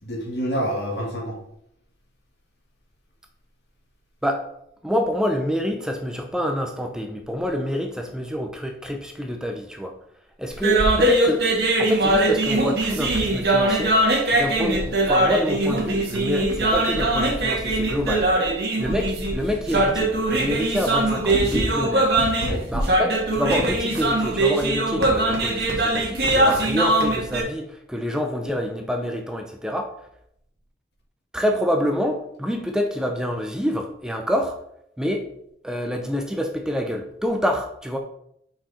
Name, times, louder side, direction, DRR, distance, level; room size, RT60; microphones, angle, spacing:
voice 1, 0.0-1.3 22.4-22.7, equal, 75° left, -1 dB, 2.2 m, -27 dB
voice 2, 4.8-9.9 10.4-11.4 11.8-13.9 14.3-18.3 18.8-22.1 22.7-29.9 31.3-34.5 35.0-35.3 35.6-38.0, equal, 5° right, 3 dB, 0.6 m, -27 dB
sound 1, 10.5-27.4, right 1 dB, 65° right, 1.6 m, -21 dB
5.7 x 5.5 x 4.2 m, 0.72 s
head